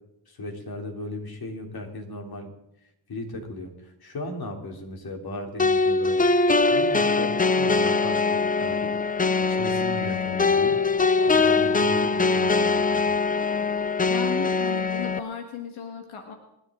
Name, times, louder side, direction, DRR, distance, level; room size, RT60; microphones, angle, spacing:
voice 1, 0.3-2.5 3.1-6.2 6.7-8.9 9.5-10.7 11.2-13.2, left 1 dB, 50° left, 2 dB, 3.5 m, -36 dB
sound 1, 5.6-15.2, left 4 dB, 20° left, 0.7 m, -22 dB
voice 2, 14.1-16.3, left 7 dB, 85° left, 3 dB, 1.9 m, -35 dB
27.5 x 11.0 x 3.9 m, 0.87 s
cardioid pair, 75°, 47 cm